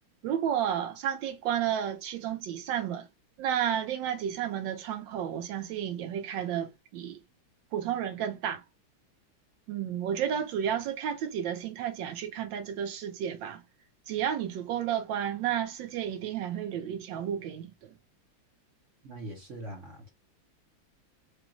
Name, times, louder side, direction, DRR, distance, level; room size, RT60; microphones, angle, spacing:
voice 1, 0.2-3.0 3.4-7.2 7.7-8.6 9.7-13.6 14.1-17.9, right 9 dB, 75° right, 1.2 m, -32 dB
voice 2, 19.0-20.1, right 1 dB, 55° right, 0.8 m, -42 dB
5.0 x 2.3 x 3.0 m
omnidirectional pair, 2.2 m